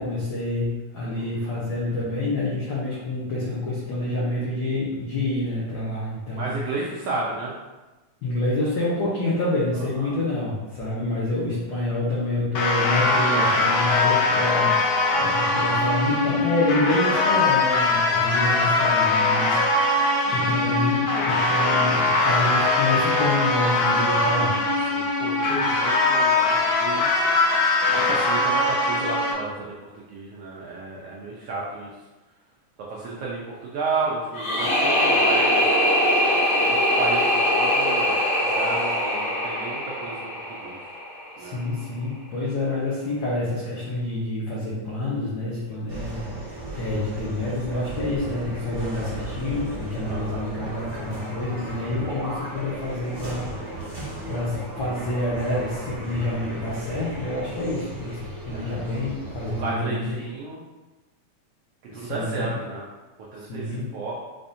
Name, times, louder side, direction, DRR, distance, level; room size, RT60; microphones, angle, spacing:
voice 1, 0.0-6.6 8.2-14.8 15.1-24.6 41.4-54.0 54.3-60.2 61.9-62.5 63.4-63.9, left 2 dB, 90° left, -7 dB, 1.0 m, -28 dB
voice 2, 1.1-1.4 6.4-7.5 9.7-10.1 18.1-18.4 24.9-27.2 27.9-31.9 32.8-35.8 36.6-40.8 41.4-41.6 50.0-50.5 58.5-58.8 59.4-60.6 61.9-62.8 63.3-64.1, right 3 dB, 75° right, -5 dB, 1.4 m, -33 dB
sound 1, 12.6-29.3, left 3 dB, 75° left, 1.9 m, -21 dB
sound 2, 34.3-41.3, equal, 50° left, 1.0 m, -22 dB
sound 3, 45.9-59.6, right 1 dB, 40° right, 0.8 m, -35 dB
5.5 x 3.4 x 2.6 m, 1.1 s
omnidirectional pair, 3.4 m